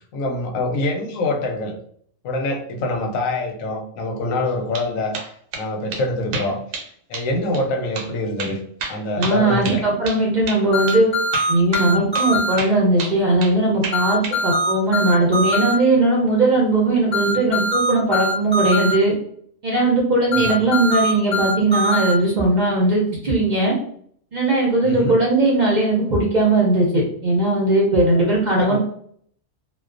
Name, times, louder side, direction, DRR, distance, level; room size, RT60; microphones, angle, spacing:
voice 1, 0.1-1.8 2.2-5.1 5.5-6.6 7.1-8.6 8.9-9.8 20.3-20.6 24.8-25.2 28.6-28.8, left 2 dB, 85° left, 3 dB, 1.0 m, -25 dB
sound 1, 4.5-4.9 5.1-5.7 5.9-6.0 6.3-6.9 7.1-7.3 7.5-7.6 8.0-8.1 8.4-10.2 10.5-10.6 10.9-11.0 11.3-11.9 12.1-12.3 12.6-13.6 13.8-14.4, right 4 dB, 80° right, 1.0 m, -30 dB
voice 2, 9.2-11.1 11.5-19.1 19.6-23.7 24.3-28.8, right 2 dB, 50° right, -4 dB, 0.6 m, -18 dB
sound 2, 10.7-12.5 13.9-15.7 17.1-18.9 20.3-22.1, equal, 10° left, 0.8 m, -22 dB
2.3 x 2.2 x 2.4 m, 0.62 s
omnidirectional pair, 1.3 m